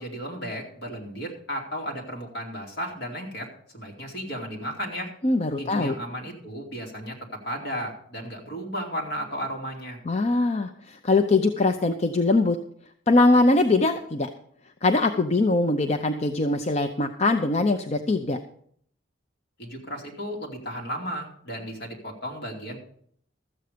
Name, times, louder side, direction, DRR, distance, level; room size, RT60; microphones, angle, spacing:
voice 1, 0.0-5.1 5.6-10.0 19.6-22.8, equal, 60° left, 0 dB, 2.6 m, -34 dB
voice 2, 5.2-6.0 10.1-12.6 13.1-14.3 14.8-18.4, left 2 dB, 35° left, 6 dB, 0.5 m, -22 dB
13.5 x 8.0 x 5.0 m, 0.63 s
head